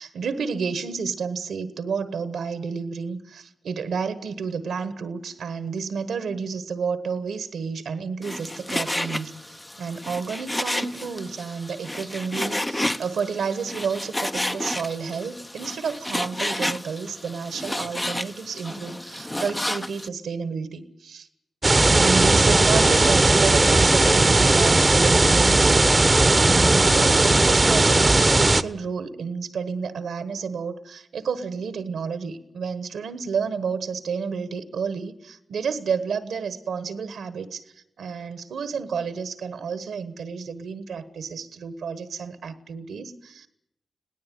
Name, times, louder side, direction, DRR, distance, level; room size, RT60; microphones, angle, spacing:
voice 1, 0.0-9.4 9.8-21.3 21.9-37.6 38.0-43.5, right 5 dB, 80° right, 13 dB, 1.2 m, -30 dB
Frying (food), 8.2-20.1, left 1 dB, 15° left, 0.9 m, -31 dB
sound 1, 21.6-28.6, right 2 dB, 30° right, 0.9 m, -17 dB
20.5 x 17.5 x 9.3 m, 0.81 s
supercardioid pair, 40°, 0 cm